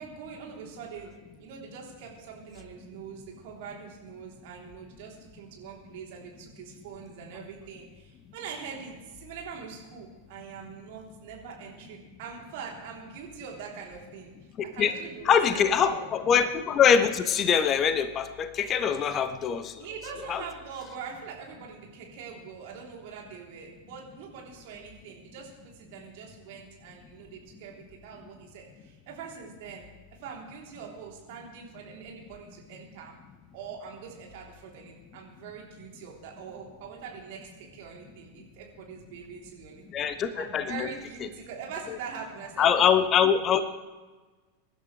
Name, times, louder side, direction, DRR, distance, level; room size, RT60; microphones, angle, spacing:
voice 1, 0.0-14.3 14.6-15.6 15.9-16.1 19.8-29.9 30.2-33.1 33.5-39.8 40.3-43.0 43.4-43.6, right 6 dB, 50° right, -1 dB, 3.4 m, -43 dB
voice 2, 15.2-19.7 20.3-20.4 39.9-40.9 42.6-43.6, left 7 dB, 30° left, 12 dB, 0.8 m, -23 dB
23.5 x 11.5 x 3.3 m, 1.3 s
figure-of-eight pair, 90°, 0 cm